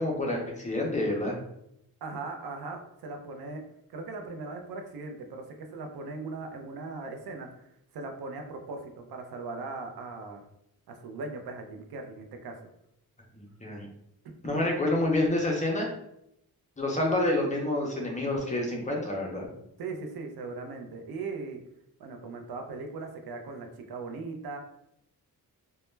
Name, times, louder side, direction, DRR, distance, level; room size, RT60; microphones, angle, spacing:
voice 1, 0.0-1.3 13.6-13.9 14.4-15.9 16.8-19.5, left 1 dB, 20° left, -1 dB, 0.4 m, -28 dB
voice 2, 2.0-3.6 3.9-10.4 10.9-12.5 14.4-14.7 19.8-21.6 22.0-24.6, right 3 dB, 75° right, 4 dB, 0.5 m, -39 dB
2.1 x 2.1 x 3.0 m, 0.78 s
wide cardioid pair, 130°, 37 cm